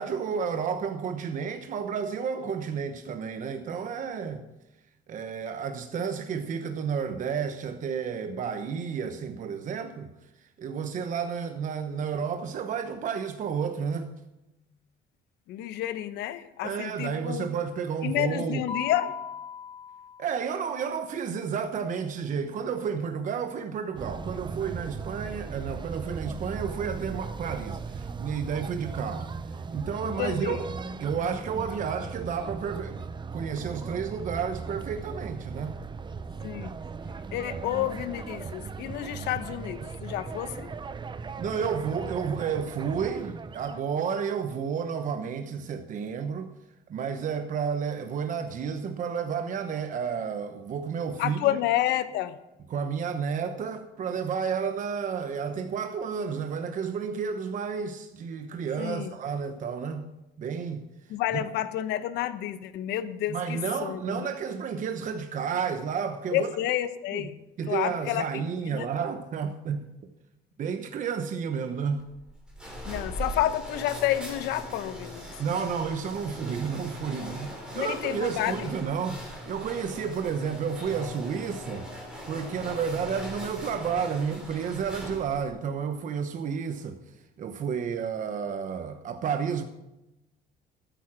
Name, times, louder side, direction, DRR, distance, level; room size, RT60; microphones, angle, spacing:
voice 1, 0.0-4.4 5.1-10.1 10.6-14.1 16.6-18.6 20.2-29.3 29.7-30.7 31.0-33.1 33.3-35.7 41.4-46.5 46.9-51.6 52.7-60.1 60.4-60.8 63.3-66.5 67.1-67.3 67.6-69.8 70.6-72.1 75.4-81.9 82.3-87.0 87.4-89.6, right 6 dB, 50° right, 1.0 m, -31 dB
voice 2, 15.5-17.5 18.0-19.1 30.0-30.6 36.4-36.8 37.3-40.7 51.2-52.4 58.8-59.1 61.1-64.3 66.3-67.4 67.7-68.9 72.9-75.2 77.7-78.7, left 13 dB, 85° left, 1.0 m, -30 dB
Mallet percussion, 18.7-20.7, left 6 dB, 40° left, 4.3 m, -38 dB
sound 1, 23.9-43.8, right 5 dB, 25° right, 0.7 m, -38 dB
sound 2, 72.0-85.5, equal, 5° right, 5.3 m, -40 dB
13.5 x 9.1 x 6.1 m
cardioid pair, 110°, 17 cm